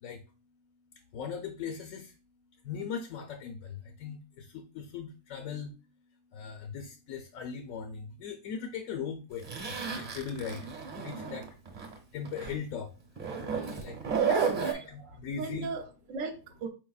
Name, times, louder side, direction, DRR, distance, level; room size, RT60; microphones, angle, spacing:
voice 1, 1.1-2.1 2.6-5.8 6.3-10.7 10.9-11.6 12.1-12.9 13.5-15.7, left 6 dB, 70° left, 1.0 m, -39 dB
Zipper (clothing), 9.4-12.0 12.2-12.5 13.2-14.7, right 6 dB, 35° right, 1.1 m, -32 dB
voice 2, 14.4-14.9 15.4-16.7, right 4 dB, 65° right, 1.1 m, -38 dB
4.9 x 4.6 x 2.3 m
omnidirectional pair, 1.6 m